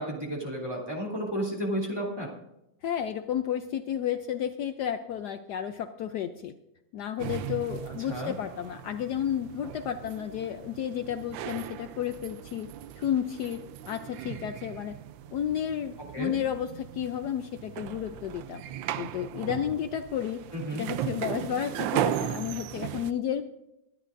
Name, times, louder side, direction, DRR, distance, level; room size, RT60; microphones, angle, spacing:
voice 1, 0.0-2.3 8.1-8.3 16.1-16.3 20.5-20.8, equal, 10° right, -2 dB, 2.8 m, -32 dB
voice 2, 2.8-6.5 6.9-12.7 13.0-13.6 13.9-15.0 15.3-18.6 19.0-20.4 20.7-23.4, left 9 dB, 70° left, 8 dB, 1.1 m, -32 dB
sound 1, 7.2-23.1, right 10 dB, 85° right, 1.3 m, -37 dB
23.0 x 11.0 x 2.6 m, 0.89 s
omnidirectional pair, 2.0 m